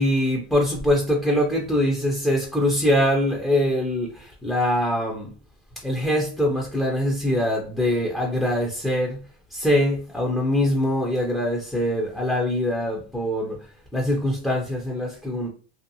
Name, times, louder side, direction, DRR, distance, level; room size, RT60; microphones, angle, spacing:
voice 1, 0.0-5.3 5.8-9.2 9.5-13.6 13.9-15.5, left 1 dB, ahead, -1 dB, 0.3 m, -23 dB
2.7 x 2.2 x 2.6 m, 0.37 s
supercardioid pair, 120°, 32 cm